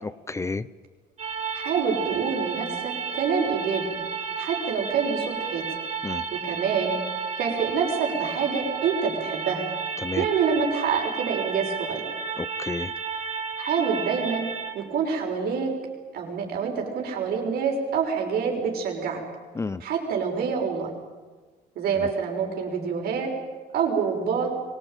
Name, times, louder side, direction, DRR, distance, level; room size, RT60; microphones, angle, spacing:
voice 1, 0.0-0.7 6.0-6.3 10.0-10.3 12.4-12.9 19.6-19.8 22.0-22.1, left 3 dB, 15° left, 16 dB, 0.7 m, -31 dB
sound 1, 1.2-14.7, right 6 dB, 40° right, 3.1 m, -32 dB
voice 2, 1.5-4.0 4.4-5.6 6.3-6.9 7.4-9.7 10.2-12.0 13.6-14.5 14.7-15.7 16.1-19.2 19.8-20.9 21.8-23.3 23.7-24.5, right 6 dB, 65° right, 2 dB, 6.2 m, -26 dB
24.0 x 19.0 x 9.2 m, 1.4 s
cardioid pair, 110°, 17 cm